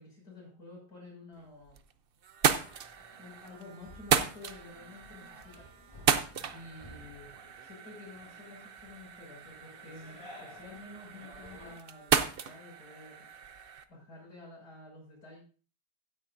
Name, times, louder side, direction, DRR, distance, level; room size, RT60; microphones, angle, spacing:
voice 1, 0.0-1.8 3.2-5.7 6.5-7.3 7.6-13.3 13.9-15.4, left 2 dB, 70° left, -1 dB, 6.5 m, -50 dB
sound 1, 1.4-1.9 2.2-13.8, right 7 dB, 55° right, 0.6 m, -34 dB
sound 2, 2.4-11.8, left 1 dB, 20° left, 2.2 m, -55 dB
16.0 x 10.0 x 2.6 m, 0.37 s
omnidirectional pair, 1.8 m